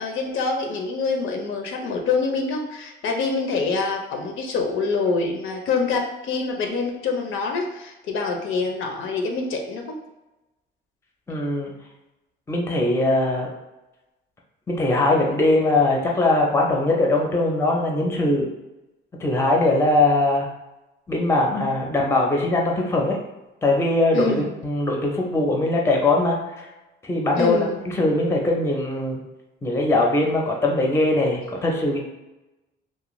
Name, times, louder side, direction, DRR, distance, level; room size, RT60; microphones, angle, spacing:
voice 1, 0.0-10.0 24.1-24.5 27.4-27.8, left 4 dB, 70° left, 3 dB, 0.5 m, -25 dB
voice 2, 11.3-11.7 12.5-13.5 14.7-18.5 19.2-20.5 21.1-23.2 23.6-26.7 27.0-29.2 29.6-32.0, left 2 dB, 10° left, -1 dB, 0.5 m, -21 dB
2.5 x 2.2 x 3.0 m, 1.0 s
cardioid pair, 115°, 21 cm